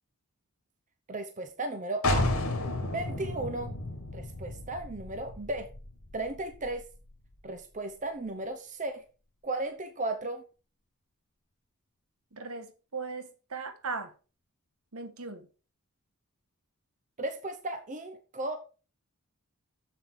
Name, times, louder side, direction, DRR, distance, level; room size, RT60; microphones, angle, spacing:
voice 1, 1.1-2.3 2.8-3.8 4.1-5.7 6.1-6.8 7.4-9.0 9.4-10.4 17.2-18.6, right 2 dB, 35° right, 0.9 m, -35 dB
sound 1, 2.0-7.6, left 2 dB, 85° left, 2.3 m, -33 dB
voice 2, 12.3-14.1 14.9-15.5, right 4 dB, 80° right, 1.5 m, -38 dB
7.3 x 7.2 x 4.8 m
head